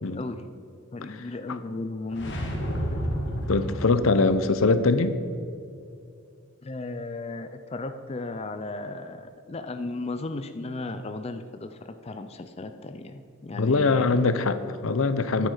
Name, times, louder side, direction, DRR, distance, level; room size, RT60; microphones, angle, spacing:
voice 1, 0.0-0.4 0.9-2.6 6.6-14.2, left 2 dB, 30° left, 8 dB, 0.4 m, -35 dB
sound 1, 2.1-4.3, equal, 55° left, 1.6 m, -30 dB
voice 2, 3.5-5.2 13.5-15.5, left 3 dB, 70° left, 12 dB, 0.6 m, -22 dB
10.5 x 9.0 x 5.5 m, 2.5 s
head